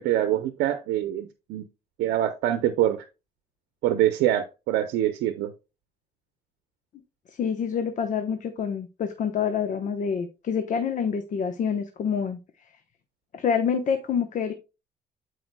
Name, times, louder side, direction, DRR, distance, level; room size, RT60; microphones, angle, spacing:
voice 1, 0.0-1.6 2.0-3.0 3.8-5.5, right 12 dB, 80° right, 9 dB, 0.8 m, -25 dB
voice 2, 7.4-12.4 13.3-14.5, left 7 dB, 45° left, 7 dB, 1.0 m, -27 dB
12.5 x 4.9 x 2.3 m, 0.28 s
cardioid pair, 110°, 17 cm